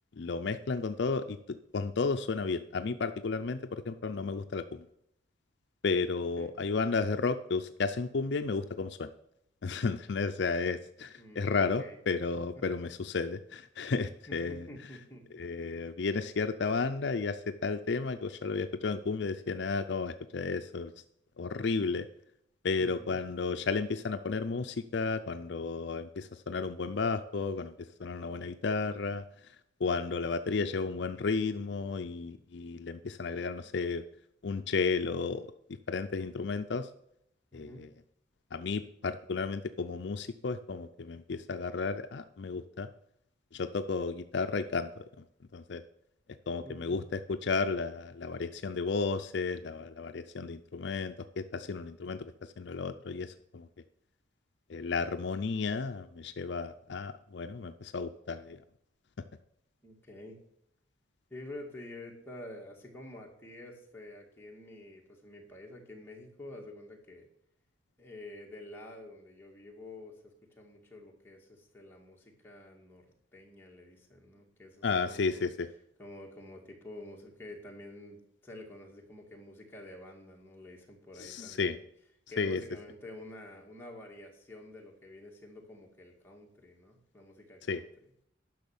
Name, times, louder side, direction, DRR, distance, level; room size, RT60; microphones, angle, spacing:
voice 1, 0.2-4.8 5.8-9.1 9.6-14.7 15.3-20.9 21.4-22.1 22.6-27.7 28.0-34.0 34.4-35.5 35.9-36.9 37.5-37.9 38.5-42.9 43.5-45.0 45.5-45.8 46.5-53.7 54.7-58.6 74.8-75.7 81.2-81.8 82.4-82.6 87.7-87.8, left 4 dB, 60° left, 9 dB, 0.5 m, -33 dB
voice 2, 6.1-6.5 11.2-12.0 12.6-12.7 14.3-15.2 22.8-23.2 37.5-37.9 46.6-47.0 59.8-60.4 61.3-67.3 68.0-75.5 76.0-81.8 82.3-87.9, left 1 dB, 10° left, -1 dB, 2.0 m, -49 dB
10.5 x 6.2 x 7.0 m, 0.74 s
head